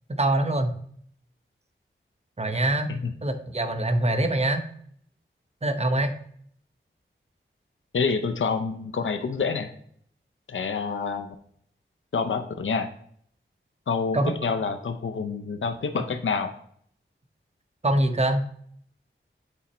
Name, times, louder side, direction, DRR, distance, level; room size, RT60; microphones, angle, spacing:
voice 1, 0.1-0.8 2.4-2.9 3.2-4.6 5.6-6.1 14.1-14.3 17.8-18.4, right 1 dB, 30° right, 6 dB, 0.8 m, -24 dB
voice 2, 7.9-9.7 10.5-11.3 12.1-12.9 13.9-16.5, left 5 dB, 70° left, 7 dB, 0.6 m, -27 dB
8.2 x 4.1 x 4.2 m, 0.63 s
wide cardioid pair, 60°, 21 cm